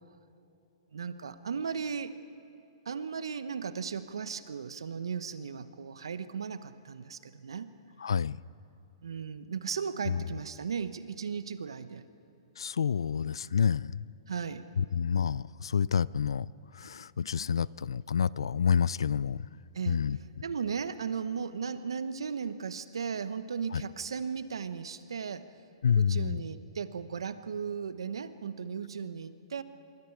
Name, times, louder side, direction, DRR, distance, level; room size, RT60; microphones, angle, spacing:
voice 1, 0.9-2.1 2.8-7.7 9.0-12.1 14.3-14.7 19.7-20.0 20.4-25.5 26.0-29.6, right 6 dB, 80° right, 1.1 m, -36 dB
voice 2, 8.0-8.4 10.1-10.2 12.6-14.1 14.8-16.5 16.7-19.5 19.9-20.2 23.7-23.8 25.8-26.4, left 7 dB, 80° left, 0.4 m, -28 dB
26.5 x 23.5 x 4.8 m
hypercardioid pair, 120°, 3 cm